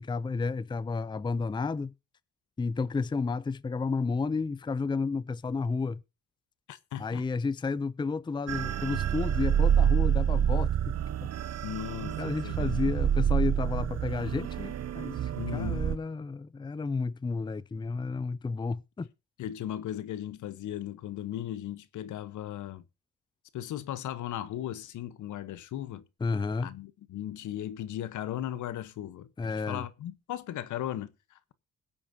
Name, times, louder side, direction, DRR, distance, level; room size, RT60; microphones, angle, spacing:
voice 1, 0.0-1.9 2.6-6.0 7.0-10.9 12.2-19.1 26.2-26.7 29.4-29.8, left 4 dB, 15° left, 0.5 m, -32 dB
voice 2, 6.7-7.3 11.6-12.9 15.3-15.9 19.4-22.8 23.5-26.0 26.6-31.5, left 12 dB, 75° left, 1.1 m, -37 dB
sound 1, 8.5-16.0, right 9 dB, 55° right, 0.9 m, -28 dB
21.5 x 8.7 x 2.8 m
cardioid pair, 90°, 30 cm